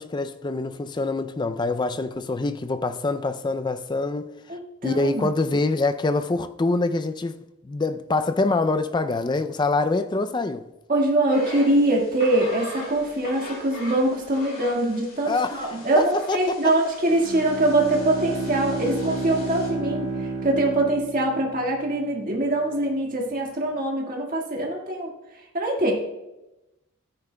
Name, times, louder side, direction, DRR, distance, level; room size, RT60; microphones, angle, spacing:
voice 1, 0.0-4.3 4.8-7.4 7.6-10.7 15.3-16.7, left 3 dB, 20° left, 0.3 m, -25 dB
voice 2, 4.5-5.3 10.9-25.1 25.5-25.9, right 1 dB, 40° right, 1.7 m, -23 dB
sound 1, 11.3-19.7, equal, 45° left, 2.3 m, -40 dB
Bowed string instrument, 17.1-21.8, right 3 dB, 80° right, 0.9 m, -31 dB
13.5 x 9.7 x 2.2 m
head